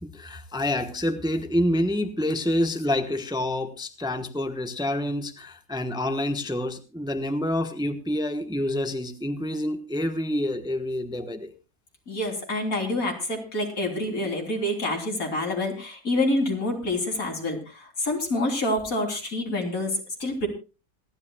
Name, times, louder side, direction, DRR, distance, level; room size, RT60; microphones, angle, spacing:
voice 1, 0.0-11.5, left 1 dB, 5° right, 8 dB, 1.0 m, -27 dB
voice 2, 12.1-20.5, left 1 dB, 80° left, 2 dB, 3.9 m, -27 dB
27.0 x 11.5 x 2.3 m, 0.30 s
omnidirectional pair, 1.5 m